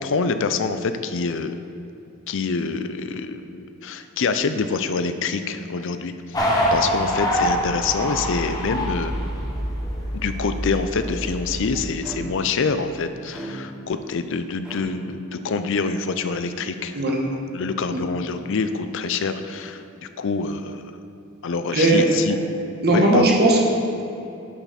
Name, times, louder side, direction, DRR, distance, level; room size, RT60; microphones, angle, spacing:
voice 1, 0.0-1.6 2.3-9.1 10.1-17.0 17.5-20.8 21.4-22.4 22.9-23.3, left 4 dB, 60° left, 10 dB, 0.5 m, -26 dB
sound 1, 6.3-11.8, equal, 15° left, 1.1 m, -25 dB
sound 2, 12.0-12.6 13.3-14.0 14.6-14.8, right 1 dB, 5° right, 1.0 m, -36 dB
voice 2, 21.7-22.0 22.8-23.6, right 2 dB, 50° right, -1 dB, 1.4 m, -17 dB
10.5 x 5.7 x 4.2 m, 2.8 s
head